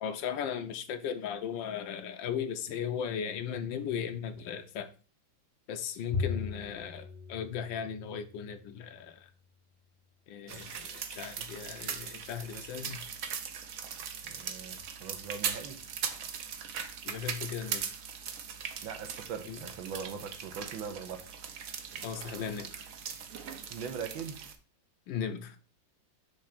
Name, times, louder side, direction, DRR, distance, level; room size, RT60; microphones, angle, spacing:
voice 1, 0.0-4.9 5.7-9.3 10.3-13.0 17.0-17.9 19.5-19.6 22.0-22.9 25.1-25.6, left 8 dB, 75° left, 1.4 m, -37 dB
Bowed string instrument, 6.1-8.7, left 5 dB, 50° left, 0.6 m, -38 dB
sound 1, 10.5-24.6, right 7 dB, 60° right, 0.9 m, -40 dB
voice 2, 14.2-15.8 18.8-21.2 23.7-24.4, right 6 dB, 80° right, 1.7 m, -41 dB
6.4 x 3.5 x 5.7 m
omnidirectional pair, 2.2 m